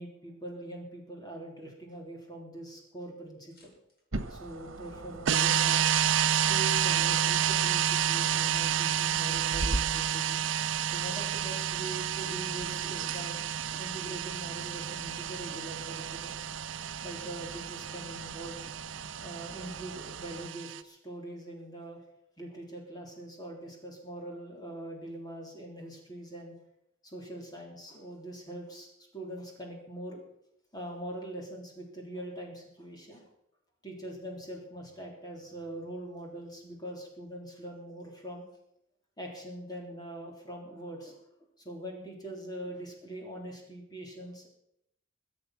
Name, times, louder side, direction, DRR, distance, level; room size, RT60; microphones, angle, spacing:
voice 1, 0.0-3.7 4.3-5.9 6.3-10.4 10.9-13.4 13.7-16.4 17.0-18.6 19.2-22.0 22.4-26.5 27.0-28.9 29.1-30.2 30.7-33.2 33.8-38.4 39.2-41.2 41.6-44.5, right 1 dB, 20° left, 0 dB, 3.5 m, -42 dB
sound 1, 3.5-4.0 5.5-5.8 7.9-8.2 9.9-10.2 12.1-12.5, left 2 dB, 50° left, 6.0 m, -57 dB
sound 2, 4.1-20.5, right 2 dB, 85° right, 1.3 m, -42 dB
sound 3, 5.3-20.8, right 10 dB, 65° right, 0.6 m, -30 dB
23.0 x 7.8 x 6.1 m, 0.78 s
head